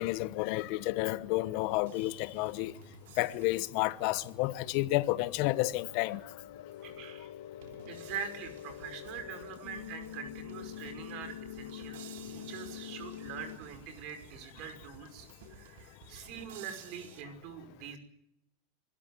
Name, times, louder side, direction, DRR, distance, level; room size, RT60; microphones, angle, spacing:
voice 1, 0.0-2.7 3.2-6.2, left 18 dB, 55° left, 1.0 m, -31 dB
sound 1, 1.9-6.3 6.7-6.8 7.6-17.2, right 7 dB, 75° right, 3.2 m, -55 dB
sound 2, 5.6-13.6, left 11 dB, 80° left, 1.2 m, -45 dB
voice 2, 6.8-7.3 7.9-18.0, right 7 dB, 55° right, 5.4 m, -44 dB
25.0 x 13.0 x 9.3 m
hypercardioid pair, 115°, 0 cm